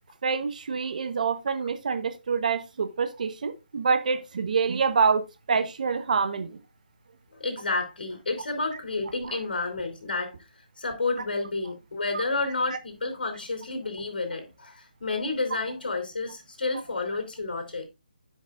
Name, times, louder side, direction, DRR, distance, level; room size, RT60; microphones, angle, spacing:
voice 1, 0.2-5.2 5.5-6.5, right 5 dB, 55° right, 1.1 m, -26 dB
voice 2, 7.3-10.3 10.8-17.9, left 3 dB, 75° left, 3.2 m, -30 dB
15.5 x 5.3 x 2.5 m
hypercardioid pair, 165°, 5 cm